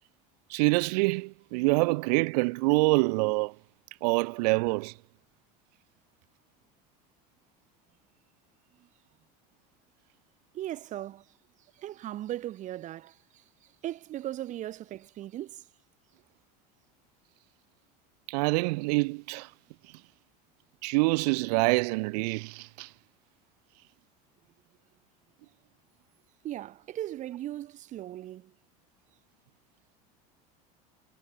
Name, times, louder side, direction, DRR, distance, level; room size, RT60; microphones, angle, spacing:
voice 1, 0.5-3.5 4.0-4.9 18.3-19.5 20.8-22.9, right 27 dB, 80° right, 0.4 m, -26 dB
voice 2, 10.5-11.2 11.8-13.2 13.8-15.6 26.4-28.5, right 13 dB, 35° right, 0.9 m, -37 dB
supercardioid pair, 135°, 20 cm